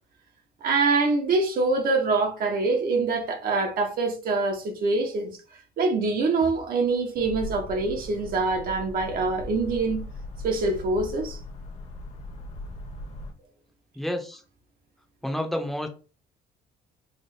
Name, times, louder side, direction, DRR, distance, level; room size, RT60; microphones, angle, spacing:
voice 1, 0.6-5.3 5.8-10.0 10.4-11.4, right 3 dB, 60° right, 1.1 m, -25 dB
sound 1, 7.1-13.3, left 1 dB, 40° left, 1.2 m, -39 dB
voice 2, 13.9-14.4 15.2-15.9, left 1 dB, ahead, 0.8 m, -29 dB
3.5 x 2.4 x 4.2 m
cardioid pair, 110°, 17 cm